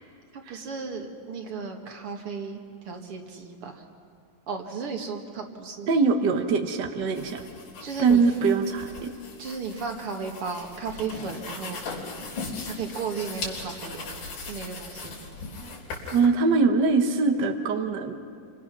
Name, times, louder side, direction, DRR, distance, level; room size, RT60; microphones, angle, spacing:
voice 1, 0.3-3.8 4.5-5.9 7.8-8.2 9.4-11.8 12.6-14.0 14.4-15.3, right 5 dB, 45° right, 3 dB, 2.4 m, -35 dB
voice 2, 5.9-7.4 8.0-9.1 16.1-18.2, right 4 dB, 75° right, 5 dB, 0.9 m, -22 dB
sound 1, 7.1-16.3, left 4 dB, 85° left, 5.4 m, -39 dB
29.5 x 25.5 x 6.2 m, 2.3 s
omnidirectional pair, 3.9 m